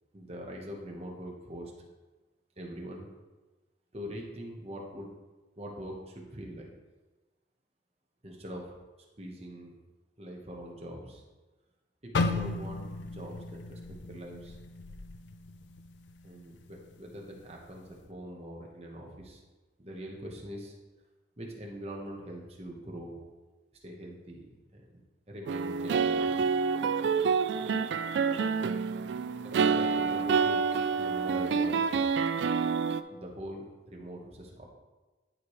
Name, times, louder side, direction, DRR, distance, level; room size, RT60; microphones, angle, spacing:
voice 1, 0.1-1.9 2.6-3.1 3.9-5.1 5.6-6.7 8.2-8.7 9.2-9.8 10.2-11.2 12.0-12.8 13.1-14.6 16.2-19.4 19.8-20.7 21.4-23.2 23.7-25.0 25.3-26.4 27.6-27.7 28.3-28.6 29.0-32.0 33.1-34.7, equal, 35° right, -1 dB, 1.2 m, -43 dB
sound 1, 12.1-16.2 16.5-16.8 17.4-17.8, left 3 dB, 80° left, 0.4 m, -35 dB
sound 2, 25.5-33.0, right 5 dB, 75° right, 0.3 m, -28 dB
11.5 x 4.8 x 3.2 m, 1.2 s
head